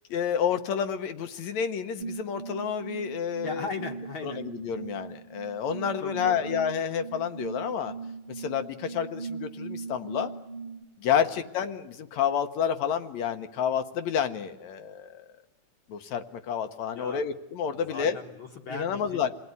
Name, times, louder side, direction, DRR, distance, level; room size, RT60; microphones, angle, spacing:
voice 1, 0.1-3.7 4.2-7.9 8.4-10.3 11.0-15.3 15.9-18.2 18.7-19.3, left 8 dB, 70° left, 8 dB, 2.3 m, -29 dB
sound 1, 2.0-10.8, right 4 dB, 20° right, 1.3 m, -39 dB
voice 2, 3.4-4.4 6.0-6.5 16.9-17.2 17.7-19.3, left 4 dB, 50° left, 4 dB, 1.8 m, -38 dB
27.5 x 18.0 x 9.7 m, 0.98 s
omnidirectional pair, 3.5 m